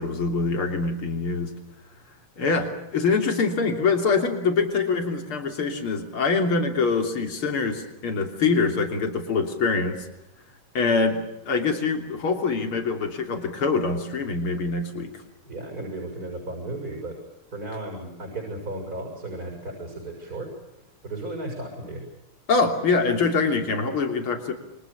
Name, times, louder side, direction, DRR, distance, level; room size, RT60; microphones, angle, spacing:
voice 1, 0.0-1.5 2.4-10.1 10.7-15.1 22.5-24.5, left 4 dB, 75° left, 4 dB, 4.0 m, -24 dB
voice 2, 15.4-17.2 17.5-20.5 21.0-22.0, right 2 dB, 40° right, 2 dB, 7.2 m, -34 dB
29.0 x 24.0 x 7.0 m, 0.90 s
omnidirectional pair, 2.4 m